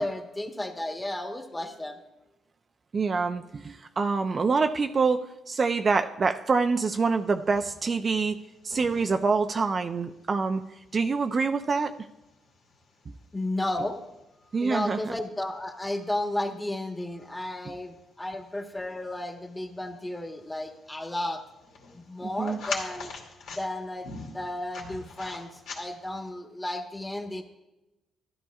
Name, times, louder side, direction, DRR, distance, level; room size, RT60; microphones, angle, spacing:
voice 1, 0.0-2.0 13.3-14.0 14.6-21.4 21.9-23.1 23.5-24.1 24.3-25.5 25.7-27.4, left 1 dB, 15° left, 4 dB, 1.3 m, -33 dB
voice 2, 2.9-8.4 8.6-10.6 10.9-11.9 14.5-15.2 22.4-22.6, right 4 dB, 40° right, 7 dB, 0.5 m, -26 dB
sound 1, 6.9-26.3, left 4 dB, 85° left, 2.5 m, -46 dB
14.0 x 11.5 x 2.4 m, 0.97 s
cardioid pair, 90°, 0 cm